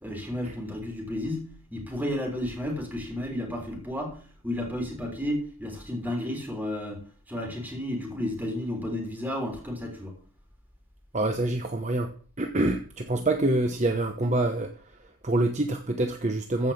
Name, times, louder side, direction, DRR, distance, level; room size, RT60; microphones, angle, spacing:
voice 1, 0.0-1.5 1.7-7.0 7.3-10.1 13.1-13.3, left 1 dB, 10° right, 3.6 m, -32 dB
voice 2, 11.1-12.1 12.4-14.8 15.2-16.7, right 2 dB, 35° right, 0.9 m, -26 dB
14.5 x 5.6 x 7.1 m
head